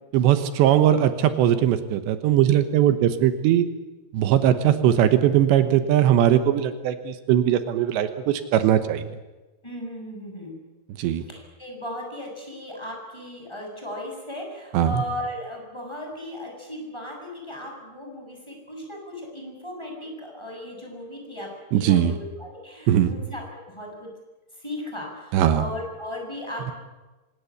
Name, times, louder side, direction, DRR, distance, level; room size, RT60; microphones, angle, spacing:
voice 1, 0.1-3.7 4.1-9.0 11.0-11.2 14.7-15.0 21.7-22.2 22.9-23.1 25.3-25.7, right 11 dB, 85° right, 10 dB, 3.3 m, -20 dB
voice 2, 9.6-10.6 11.3-23.4 23.7-24.1 24.6-26.7, left 1 dB, 5° left, 1 dB, 7.0 m, -36 dB
25.0 x 20.0 x 8.6 m, 1.2 s
omnidirectional pair, 5.1 m